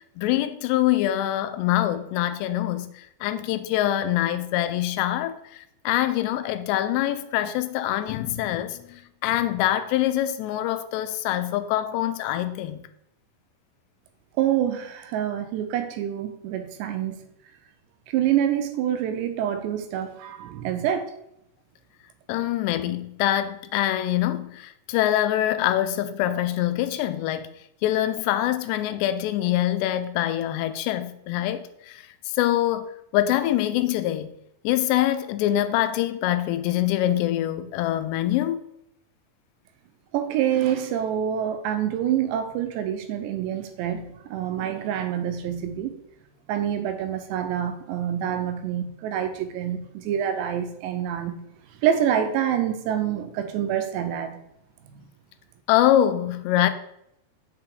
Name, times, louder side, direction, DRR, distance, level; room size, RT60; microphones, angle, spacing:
voice 1, 0.2-2.9 3.2-5.4 5.9-12.8 22.3-27.5 27.8-32.0 32.3-34.3 34.6-38.6 55.7-56.7, left 13 dB, 85° left, 2.7 m, -24 dB
voice 2, 14.4-17.2 18.1-21.1 40.1-45.9 46.5-51.4 51.8-54.4 54.9-55.0, right 10 dB, 90° right, 3.0 m, -26 dB
6.7 x 5.9 x 3.8 m
omnidirectional pair, 4.9 m